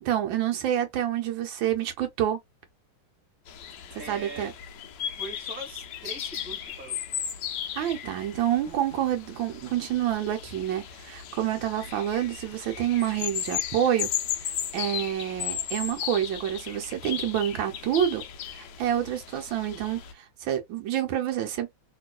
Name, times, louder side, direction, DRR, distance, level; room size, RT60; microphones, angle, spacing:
voice 1, 0.0-2.4 4.1-4.5 7.8-14.1 14.3-18.2 18.5-21.7, right 11 dB, 80° right, 1.5 m, -28 dB
sound 1, 3.5-20.1, left 10 dB, 70° left, 1.2 m, -36 dB
voice 2, 3.9-4.5 5.2-7.0, right 2 dB, 5° right, 1.4 m, -41 dB
3.1 x 3.0 x 2.3 m
omnidirectional pair, 2.2 m